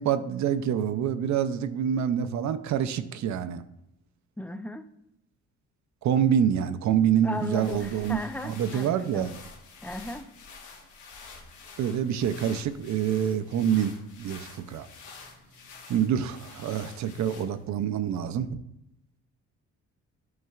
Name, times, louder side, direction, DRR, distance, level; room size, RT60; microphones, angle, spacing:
voice 1, 0.0-3.6 6.0-8.2 8.4-9.3 11.8-13.9 14.2-14.9 15.9-18.6, right 9 dB, 65° right, 11 dB, 0.6 m, -26 dB
voice 2, 4.4-4.9 7.2-9.3 9.8-10.3, left 1 dB, 5° left, 9 dB, 0.4 m, -36 dB
sound 1, 7.1-17.8, left 4 dB, 85° left, 1.3 m, -48 dB
9.4 x 5.5 x 2.4 m, 0.82 s
cardioid pair, 90°, 30 cm